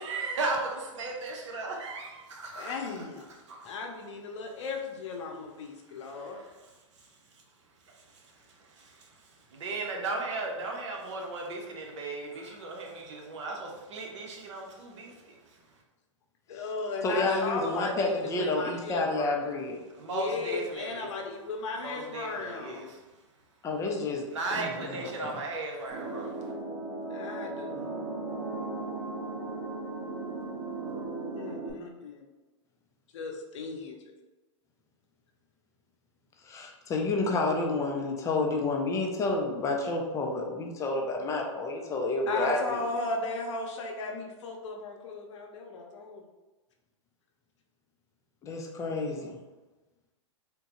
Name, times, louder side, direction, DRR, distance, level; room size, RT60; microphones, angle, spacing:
voice 1, 0.0-3.0 3.3-3.8 6.9-7.4 7.8-15.8 19.9-21.1 21.8-23.1 24.3-26.5, right 3 dB, 70° right, 0 dB, 0.9 m, -37 dB
voice 2, 2.6-3.3 3.6-6.4 16.5-17.9 18.4-19.4 20.1-22.9 27.1-27.9 31.3-32.3 33.1-34.0 42.3-46.3 49.1-49.2, left 3 dB, 65° left, 1 dB, 0.7 m, -36 dB
voice 3, 17.0-19.8 23.6-24.3 24.6-25.0 25.2-25.3 36.4-42.8 48.4-49.3, left 2 dB, 20° left, 1 dB, 0.5 m, -29 dB
sound 1, 25.9-31.7, right 2 dB, 40° right, 1.2 m, -36 dB
3.6 x 2.2 x 2.9 m, 1.2 s
hypercardioid pair, 125°, 16 cm